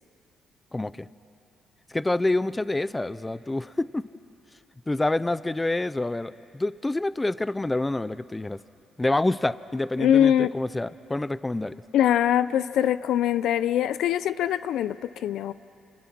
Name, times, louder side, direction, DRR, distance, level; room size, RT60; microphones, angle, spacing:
voice 1, 0.7-1.1 1.9-4.0 4.9-8.6 9.0-11.8, left 2 dB, 15° left, 16 dB, 0.5 m, -27 dB
voice 2, 10.0-10.5 11.9-15.5, left 10 dB, 80° left, 15 dB, 0.5 m, -23 dB
30.0 x 28.0 x 6.1 m, 2.8 s
cardioid pair, 90°, 0 cm